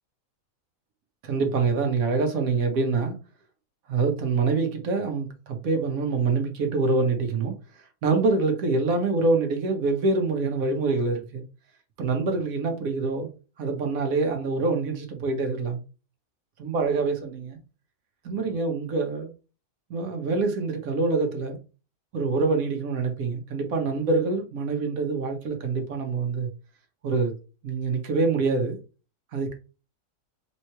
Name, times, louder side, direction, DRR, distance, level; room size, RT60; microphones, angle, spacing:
voice 1, 1.2-3.1 3.9-7.5 8.0-11.4 12.0-13.3 13.6-15.8 16.6-17.6 18.2-19.3 19.9-21.6 22.1-26.5 27.0-27.3 27.6-28.8 29.3-29.5, right 3 dB, 85° right, 1.4 m, -25 dB
3.7 x 3.1 x 4.3 m
omnidirectional pair, 1.4 m